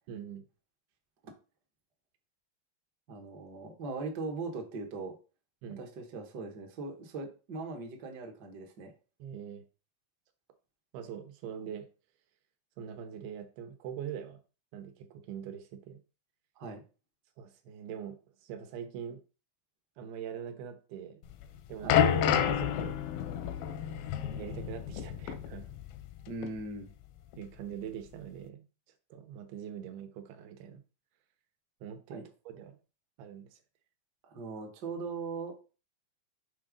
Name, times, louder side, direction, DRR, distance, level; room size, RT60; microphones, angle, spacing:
voice 1, 0.1-0.5 5.6-5.8 9.2-9.7 10.9-11.9 12.8-14.4 14.7-16.0 17.4-19.2 20.0-21.2 21.7-22.0 22.3-23.0 24.3-25.7 27.4-28.6 29.1-30.8 31.8-32.8 33.2-33.6, right 8 dB, 85° right, 8 dB, 2.8 m, -43 dB
voice 2, 3.1-5.1 5.8-8.9 16.6-16.8 21.8-22.0 26.3-26.9 32.1-32.3 34.2-35.6, right 3 dB, 70° right, 2 dB, 1.0 m, -40 dB
sound 1, 21.3-26.2 26.4-26.6 27.3-27.4, left 9 dB, 85° left, 2.4 m, -30 dB
6.8 x 3.8 x 5.1 m, 0.33 s
omnidirectional pair, 4.3 m